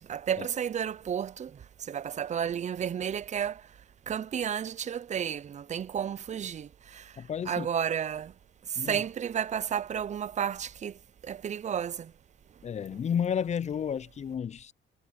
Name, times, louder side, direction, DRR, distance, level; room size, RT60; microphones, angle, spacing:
voice 1, 0.0-3.6 4.1-7.1 7.5-8.3 8.7-10.9 11.2-12.1, right 8 dB, 35° right, 0.5 m, -32 dB
voice 2, 7.2-7.7 8.8-9.0 12.6-14.7, left 8 dB, 35° left, 0.4 m, -32 dB
cardioid pair, 90°, 20 cm